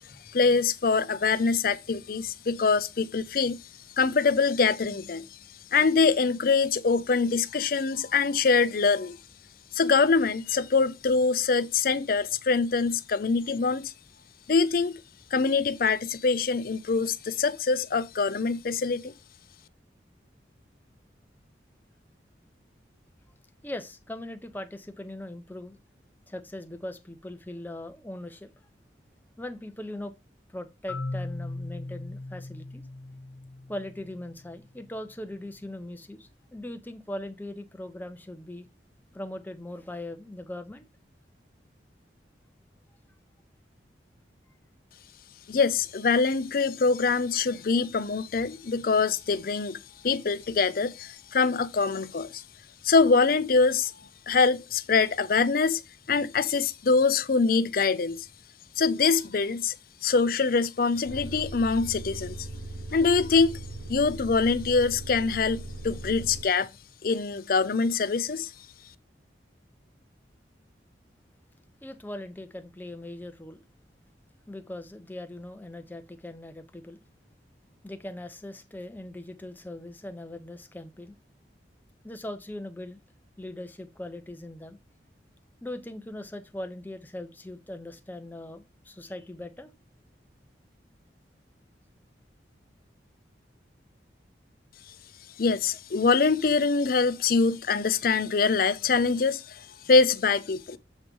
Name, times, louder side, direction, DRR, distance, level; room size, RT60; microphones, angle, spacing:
voice 1, 0.3-3.6 4.0-5.2 5.7-9.2 9.7-13.9 14.5-15.0 15.3-19.1 45.5-49.8 50.0-52.4 52.8-53.9 54.3-55.8 56.1-58.3 58.8-59.7 60.0-62.5 62.9-63.6 63.9-66.7 67.0-68.5 95.4-100.8, left 4 dB, 50° left, 0.5 m, -24 dB
voice 2, 23.6-25.8 26.3-28.5 29.4-30.1 30.5-32.8 33.7-38.7 39.1-40.8 45.5-45.6 71.8-73.6 74.5-77.0 77.8-81.2 82.0-83.0 83.4-84.8 85.6-89.7, left 1 dB, 10° left, 0.7 m, -40 dB
Marimba xylophone, 30.9-34.8, left 2 dB, 85° left, 1.1 m, -38 dB
sound 1, 61.0-66.4, right 2 dB, 85° right, 0.9 m, -39 dB
7.3 x 3.2 x 5.2 m
head